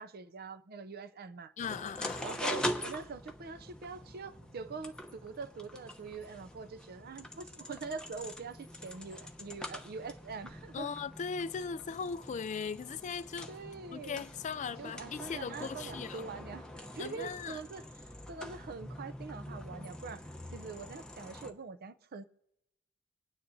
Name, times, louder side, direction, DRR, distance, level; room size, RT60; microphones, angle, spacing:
voice 1, 0.0-1.5 2.2-10.9 13.5-14.2 14.8-17.8 18.3-20.2 20.5-22.2, right 4 dB, 45° right, 0.5 m, -44 dB
voice 2, 1.6-2.2 10.7-13.5 13.9-16.3 17.0-17.6, left 6 dB, 35° left, 0.3 m, -38 dB
sound 1, 1.6-21.5, left 1 dB, 5° left, 0.8 m, -43 dB
26.0 x 9.6 x 2.7 m
head